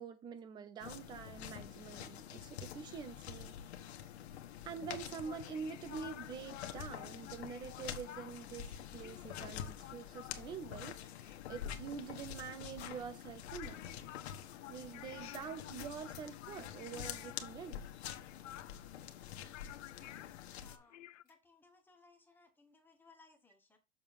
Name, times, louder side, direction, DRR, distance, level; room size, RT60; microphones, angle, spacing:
voice 1, 0.0-3.6 4.6-13.8 14.7-17.8, right 6 dB, 10° right, 0.6 m, -46 dB
sound 1, 0.8-20.8, left 9 dB, 60° left, 1.5 m, -47 dB
Airport Terminal Announcements, 5.1-21.2, left 13 dB, 75° left, 0.7 m, -54 dB
sound 2, 15.3-17.1 17.5-18.1 18.7-18.8 19.1-19.2 19.5-19.6 20.7-21.4, left 10 dB, 25° left, 2.1 m, -62 dB
voice 2, 20.2-23.8, left 4 dB, 5° left, 1.2 m, -65 dB
6.9 x 6.7 x 3.6 m
hypercardioid pair, 155°, 37 cm